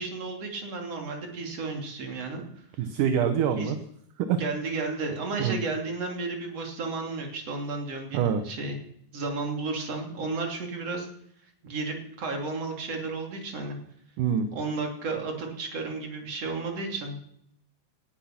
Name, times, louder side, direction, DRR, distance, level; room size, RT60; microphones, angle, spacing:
voice 1, 0.0-2.4 3.6-3.8 4.4-8.8 9.1-11.1 11.6-13.8 14.5-17.2, right 3 dB, 45° right, 2 dB, 3.8 m, -33 dB
voice 2, 2.8-3.8 4.2-4.4 5.4-5.6 8.1-8.4 14.2-14.5, right 8 dB, 70° right, 8 dB, 2.4 m, -25 dB
18.5 x 12.0 x 5.9 m, 0.73 s
omnidirectional pair, 4.1 m